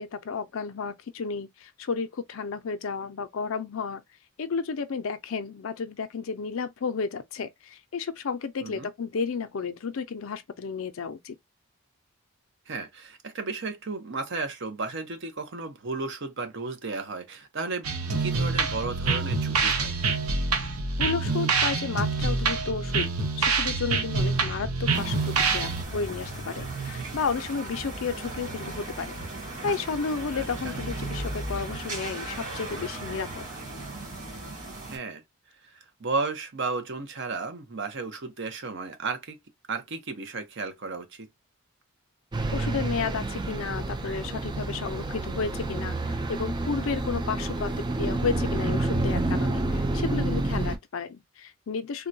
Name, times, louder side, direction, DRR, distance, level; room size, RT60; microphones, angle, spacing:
voice 1, 0.0-4.0 4.4-11.4 21.0-23.1 23.4-29.2 29.6-33.5 42.5-47.7 48.0-52.1, left 5 dB, 65° left, 0.5 m, -32 dB
voice 2, 12.7-17.9 18.2-19.9 30.3-30.8 34.9-35.2 35.7-39.4 39.7-41.3, right 3 dB, 55° right, 0.8 m, -34 dB
sound 1, 17.8-25.8, right 4 dB, 90° right, 0.7 m, -26 dB
sound 2, 24.9-35.0, right 2 dB, 35° right, 1.9 m, -36 dB
sound 3, 42.3-50.8, right 2 dB, 20° right, 0.3 m, -29 dB
3.6 x 2.2 x 2.6 m
head